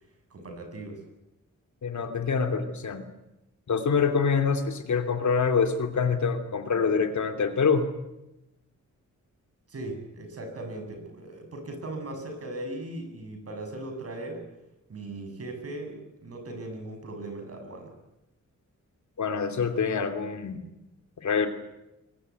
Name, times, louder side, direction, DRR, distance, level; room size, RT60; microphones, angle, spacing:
voice 1, 0.3-1.0 9.7-14.5 14.9-18.0, right 2 dB, 50° right, 5 dB, 7.1 m, -38 dB
voice 2, 1.8-3.0 3.7-7.9 19.2-20.7 21.2-21.5, left 5 dB, 70° left, 6 dB, 2.9 m, -25 dB
23.0 x 21.5 x 9.4 m, 0.94 s
wide cardioid pair, 130°, 30 cm